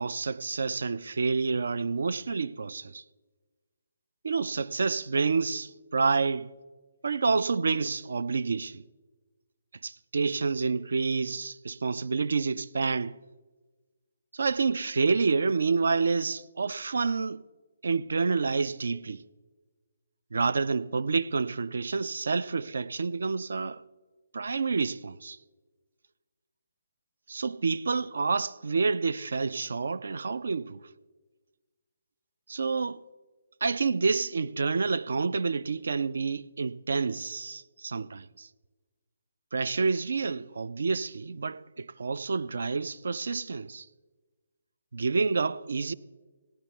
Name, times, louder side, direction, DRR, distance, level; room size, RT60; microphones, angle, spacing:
voice 1, 0.0-3.0 4.2-6.5 7.0-8.8 9.8-13.2 14.3-17.4 17.8-19.2 20.3-23.8 24.3-25.4 27.3-30.8 32.5-33.0 33.6-38.5 39.5-43.9 44.9-45.9, right 4 dB, 55° right, 0.4 m, -28 dB
16.0 x 10.5 x 3.4 m
figure-of-eight pair, 140°, 0 cm